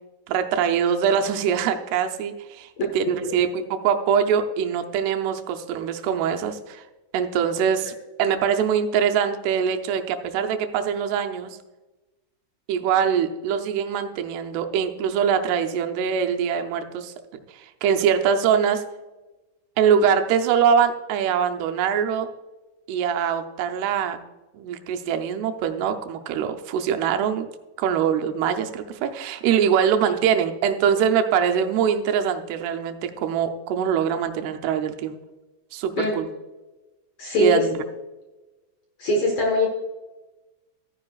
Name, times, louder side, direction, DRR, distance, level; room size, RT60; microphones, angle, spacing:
voice 1, 0.3-2.7 2.9-6.8 7.1-7.9 8.2-11.6 12.7-17.1 17.5-18.8 19.8-22.3 22.9-24.2 24.5-27.5 27.8-35.2 35.7-36.3 37.4-37.7, right 7 dB, 85° right, 6 dB, 2.8 m, -23 dB
voice 2, 37.2-37.6 39.0-39.7, left 1 dB, 60° left, 1 dB, 1.8 m, -22 dB
14.0 x 9.7 x 2.4 m, 1.1 s
omnidirectional pair, 4.6 m